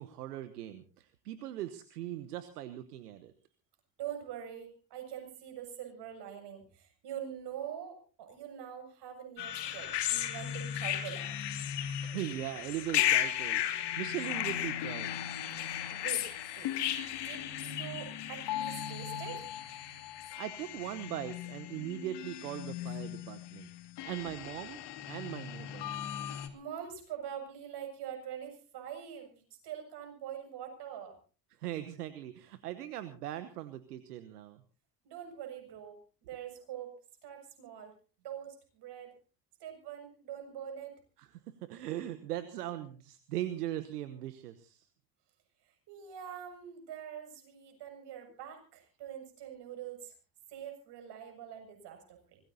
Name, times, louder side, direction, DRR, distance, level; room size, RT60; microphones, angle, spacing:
voice 1, 0.0-3.3 12.0-15.2 20.4-23.7 24.0-24.8 25.1-26.0 31.6-34.6 41.2-44.9, right 13 dB, 85° right, 11 dB, 1.1 m, -40 dB
voice 2, 4.0-11.3 15.9-16.7 17.2-19.5 26.5-31.2 35.0-36.9 37.2-37.9 38.2-39.1 39.6-40.9 45.9-50.1 50.5-52.4, right 9 dB, 60° right, 4 dB, 7.0 m, -44 dB
sound 1, 9.4-26.5, left 11 dB, 60° left, 2.7 m, -36 dB
25.0 x 19.5 x 2.8 m, 0.36 s
hypercardioid pair, 60°, 46 cm